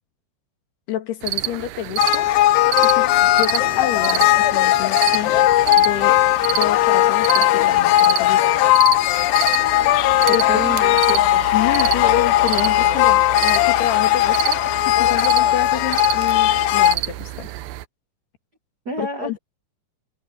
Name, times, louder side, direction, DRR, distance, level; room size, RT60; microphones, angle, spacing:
voice 1, 0.9-2.3 2.8-3.1 3.4-5.4 5.8-6.2 6.6-8.5 10.3-10.8 11.5-17.5 19.0-19.4, left 11 dB, 70° left, 4.0 m, -29 dB
sound 1, 1.2-17.8, right 17 dB, 90° right, 2.1 m, -29 dB
sound 2, 2.0-17.0, left 15 dB, 90° left, 2.1 m, -17 dB
voice 2, 10.3-11.5 18.8-19.4, right 3 dB, 70° right, 0.9 m, -30 dB
omnidirectional pair, 4.9 m